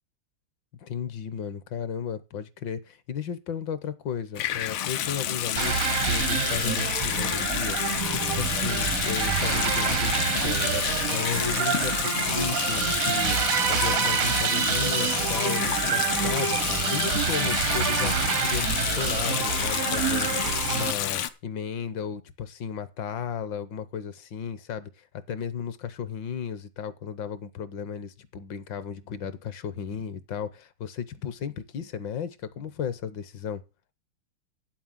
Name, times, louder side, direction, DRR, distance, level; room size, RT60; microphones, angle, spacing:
voice 1, 0.8-7.8 8.3-10.8 11.1-20.4 20.7-33.6, left 7 dB, 65° left, 1.5 m, -34 dB
Water tap faucet / Sink (filling or washing) / Bathtub (filling or washing), 4.3-21.3, left 11 dB, 80° left, 1.7 m, -29 dB
sound 1, 5.5-20.9, right 9 dB, 65° right, 0.8 m, -27 dB
sound 2, 8.0-18.4, right 10 dB, 85° right, 2.0 m, -41 dB
8.9 x 7.6 x 7.2 m
omnidirectional pair, 2.4 m